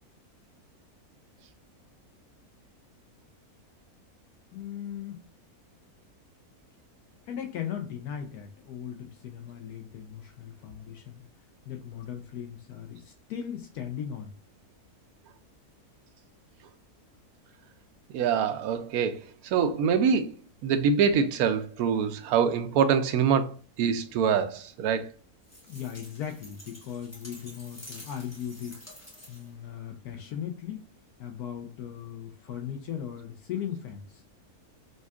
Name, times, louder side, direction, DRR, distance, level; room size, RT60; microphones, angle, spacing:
voice 1, 4.5-5.2 7.3-11.2 11.6-14.3 25.7-28.8 29.3-30.9 31.2-34.2, left 9 dB, 80° left, 1.1 m, -38 dB
voice 2, 18.1-20.3 20.6-23.5 23.8-25.1, right 6 dB, 75° right, 1.0 m, -25 dB
sound 1, 25.4-29.6, equal, 15° left, 0.7 m, -49 dB
5.2 x 2.3 x 2.3 m
omnidirectional pair, 1.6 m